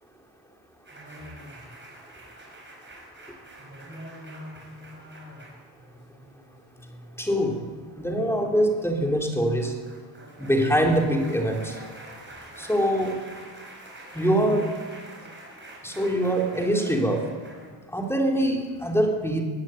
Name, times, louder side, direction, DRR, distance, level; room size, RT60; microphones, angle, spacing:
sound 1, 0.9-17.7, right 1 dB, 25° right, 6.1 m, -45 dB
voice 1, 7.2-7.7 8.0-9.8 10.4-11.7 12.6-13.2 14.1-14.7 15.8-17.3 17.9-19.4, equal, 5° left, 1 dB, 3.2 m, -23 dB
22.5 x 15.5 x 9.0 m, 1.5 s
wide cardioid pair, 175°, 44 cm